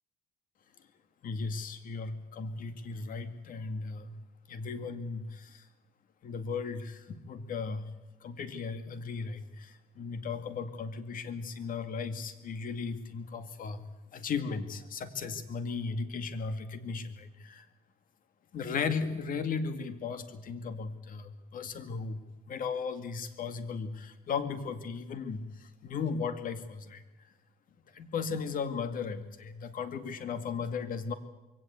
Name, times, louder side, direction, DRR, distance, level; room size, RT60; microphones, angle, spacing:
voice 1, 1.2-4.2 4.5-5.6 6.2-7.9 8.2-13.8 14.1-17.7 18.5-27.0 27.9-31.1, left 5 dB, 55° left, 10 dB, 2.2 m, -36 dB
22.5 x 17.0 x 8.2 m, 1.1 s
cardioid pair, 110°, 17 cm